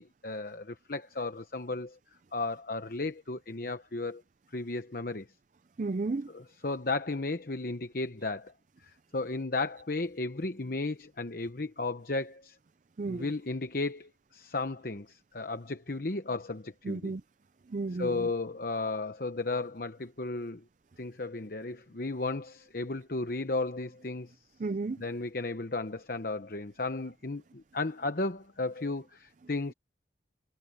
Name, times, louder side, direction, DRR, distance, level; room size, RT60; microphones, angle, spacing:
voice 1, 0.0-2.0 2.3-4.2 4.5-5.3 6.3-8.5 8.8-12.6 13.0-17.1 18.0-20.6 21.0-24.3 25.0-29.7, left 3 dB, 50° left, 0.9 m, -34 dB
voice 2, 5.8-6.3 13.0-13.3 16.8-17.2 17.7-18.3 24.6-25.0, right 3 dB, 40° right, 0.4 m, -33 dB
head